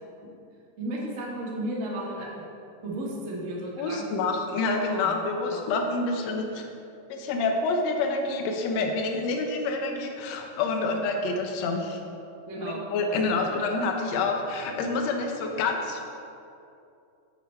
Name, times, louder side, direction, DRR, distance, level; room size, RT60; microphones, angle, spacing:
voice 1, 0.8-2.4 2.8-4.3 4.8-5.2 5.5-5.6 12.5-13.2 13.6-13.7, right 1 dB, 75° right, -4 dB, 0.7 m, -34 dB
voice 2, 3.8-6.7 7.1-12.0 12.6-16.0, left 3 dB, 70° left, 3 dB, 1.8 m, -27 dB
9.1 x 5.5 x 4.3 m, 2.6 s
omnidirectional pair, 3.6 m